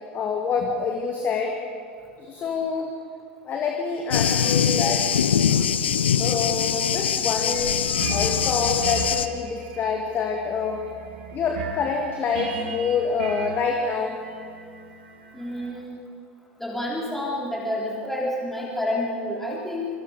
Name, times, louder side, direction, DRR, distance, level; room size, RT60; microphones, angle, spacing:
voice 1, 0.1-1.6 2.2-2.9 3.4-5.1 6.2-7.7 8.1-10.9 11.3-14.2, left 5 dB, 30° left, 2 dB, 2.4 m, -26 dB
Thunder, 4.1-9.3, left 8 dB, 70° left, 0.9 m, -23 dB
sound 1, 7.5-15.7, right 5 dB, 60° right, 3.3 m, -37 dB
voice 2, 15.3-16.0 16.6-19.9, left 1 dB, 5° left, -4 dB, 3.9 m, -29 dB
25.5 x 25.0 x 5.1 m, 2.2 s
figure-of-eight pair, 80°, 6 cm